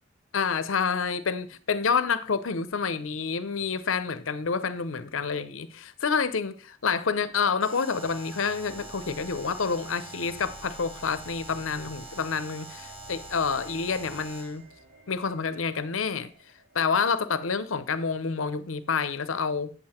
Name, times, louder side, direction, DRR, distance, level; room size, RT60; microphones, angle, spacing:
voice 1, 0.3-14.6 15.1-16.3 16.7-19.7, left 5 dB, 85° left, 0.7 m, -28 dB
Alarm, 7.6-14.6, right 2 dB, 25° right, 2.0 m, -45 dB
sound 1, 8.0-17.1, equal, 85° right, 4.6 m, -51 dB
8.3 x 7.7 x 4.3 m
head